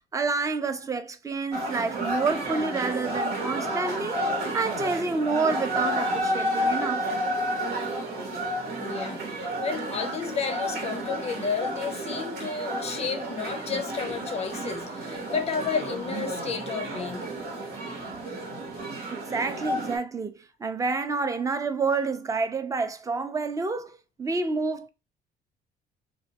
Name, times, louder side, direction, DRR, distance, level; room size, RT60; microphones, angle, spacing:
voice 1, 0.1-4.2 4.5-7.1 19.1-24.9, right 4 dB, 20° right, 0.4 m, -28 dB
sound 1, 1.5-20.0, right 1 dB, 85° right, 1.1 m, -31 dB
voice 2, 8.8-17.3, left 6 dB, 40° left, 0.4 m, -32 dB
3.0 x 2.2 x 2.8 m
cardioid pair, 110°, 17 cm